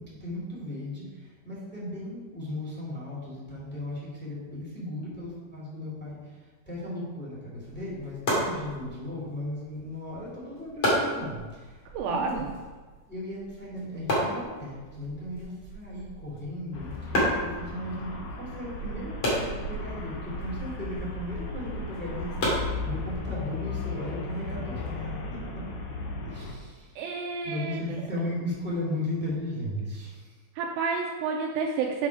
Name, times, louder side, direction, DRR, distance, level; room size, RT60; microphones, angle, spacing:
voice 1, 0.0-12.5 13.1-25.0 25.3-25.7 26.2-27.0 27.4-30.3, left 1 dB, 5° left, -7 dB, 1.2 m, -36 dB
sound 1, 7.6-23.4, equal, 40° left, 2.3 m, -33 dB
voice 2, 11.9-12.5 27.0-28.0 30.6-32.1, right 4 dB, 85° right, 1 dB, 2.5 m, -30 dB
Traffic noise roadway noise, 16.7-26.6, left 3 dB, 75° left, 2.3 m, -36 dB
7.8 x 6.0 x 4.8 m, 1.3 s
omnidirectional pair, 5.3 m